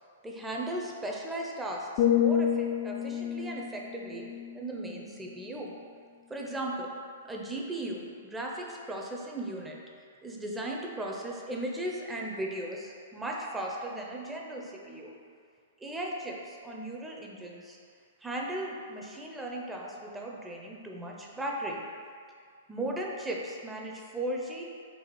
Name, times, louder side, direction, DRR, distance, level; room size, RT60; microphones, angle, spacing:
voice 1, 0.2-4.3 4.5-5.7 6.3-6.9 7.3-9.8 10.2-15.1 15.8-17.8 18.2-21.8 22.7-24.6, right 1 dB, 10° right, -1 dB, 0.6 m, -37 dB
sound 1, 2.0-6.0 6.3-6.6, left 9 dB, 45° left, 0.4 m, -30 dB
4.1 x 2.4 x 4.6 m, 2.2 s
hypercardioid pair, 120°, 0 cm